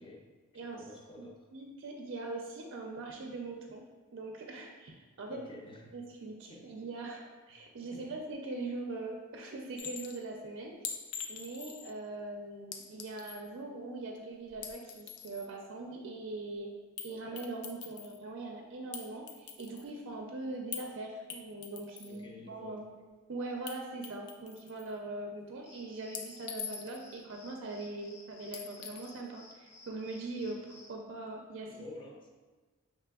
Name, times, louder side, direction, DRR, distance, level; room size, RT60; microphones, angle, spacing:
voice 1, 0.0-1.5 5.3-6.0 6.5-6.8 7.9-8.2 22.1-22.9 30.3-30.6 31.7-32.3, left 2 dB, 25° left, -1 dB, 0.5 m, -51 dB
voice 2, 1.5-3.8 4.1-5.4 5.9-10.9 11.3-16.7 17.0-22.9 23.3-31.7, right 2 dB, 60° right, 1 dB, 0.5 m, -41 dB
Chink clink, 9.8-10.2 10.8-11.9 12.7-13.5 14.5-15.5 17.0-17.1 17.4-18.2 18.9-19.9 20.7-20.9 21.3-22.2 23.7-23.8 24.0-24.9 26.1-27.1 28.5-29.1, left 7 dB, 80° left, 0.5 m, -43 dB
sound 1, 25.6-31.0, left 2 dB, 50° left, 0.8 m, -56 dB
5.8 x 3.0 x 2.3 m, 1.3 s
head